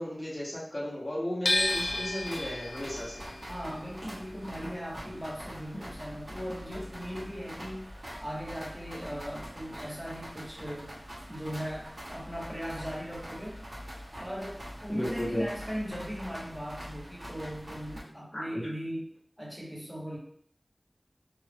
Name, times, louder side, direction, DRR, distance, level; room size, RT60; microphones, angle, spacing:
voice 1, 0.0-3.2 14.9-15.4 18.3-18.6, left 1 dB, 45° left, -7 dB, 1.0 m, -34 dB
sound 1, 1.5-7.5 7.8-9.1, left 2 dB, 85° left, 0.3 m, -34 dB
sound 2, 1.5-18.0, equal, 55° right, 0.9 m, -44 dB
voice 2, 3.5-7.9 8.2-10.9 11.3-13.6 14.2-19.0 19.4-20.2, equal, 5° right, -4 dB, 0.9 m, -38 dB
2.4 x 2.4 x 3.2 m, 0.63 s
wide cardioid pair, 45°, 0 cm